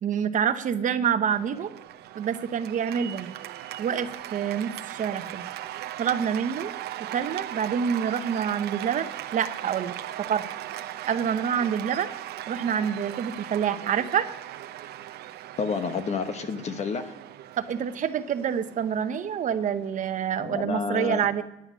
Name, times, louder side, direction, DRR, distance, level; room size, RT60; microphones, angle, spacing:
voice 1, 0.0-1.7 2.1-3.3 3.8-5.5 6.0-6.7 7.1-10.4 11.1-12.1 12.5-14.3 17.6-21.4, right 8 dB, 50° right, 10 dB, 0.9 m, -27 dB
Cheering / Applause, 1.3-20.6, right 13 dB, 70° right, 0.6 m, -39 dB
voice 2, 15.6-17.1 20.4-21.3, left 5 dB, 40° left, 9 dB, 1.1 m, -30 dB
9.8 x 9.7 x 6.1 m, 0.87 s
cardioid pair, 110°, 17 cm